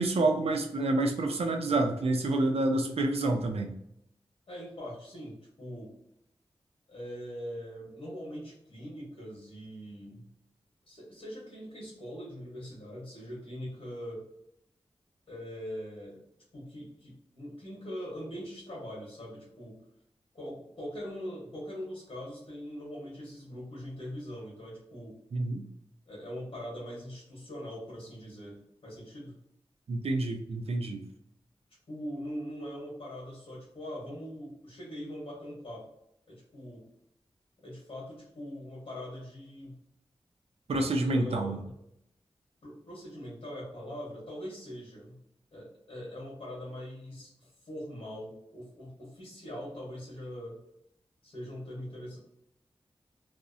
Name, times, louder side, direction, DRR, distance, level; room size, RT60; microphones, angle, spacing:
voice 1, 0.0-3.7 25.3-25.6 29.9-31.0 40.7-41.6, right 2 dB, 80° right, 3 dB, 0.4 m, -28 dB
voice 2, 4.5-5.9 6.9-10.2 10.9-14.3 15.3-16.2 16.5-19.8 20.3-25.2 26.1-29.3 31.9-35.9 36.3-36.8 37.6-39.8 41.0-41.7 42.6-45.2 45.5-50.6 51.2-52.2, equal, 75° left, -5 dB, 1.1 m, -42 dB
2.5 x 2.0 x 2.5 m, 0.78 s
wide cardioid pair, 60°, 10 cm